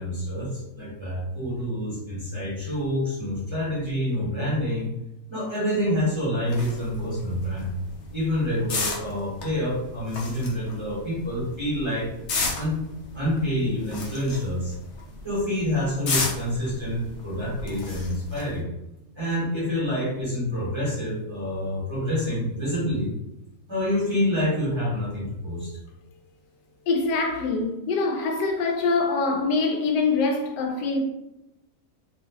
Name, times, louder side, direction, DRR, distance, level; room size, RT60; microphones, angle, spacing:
voice 1, 0.0-4.9 5.3-7.7 8.1-12.1 12.5-12.8 13.1-14.7 15.2-18.6 19.1-23.1 23.7-25.7, left 1 dB, 20° right, 1.2 m, -27 dB
sound 1, 6.5-18.6, left 3 dB, 55° left, 0.9 m, -34 dB
voice 2, 26.9-31.0, left 3 dB, 85° left, 1.2 m, -24 dB
3.0 x 2.9 x 2.8 m
omnidirectional pair, 1.7 m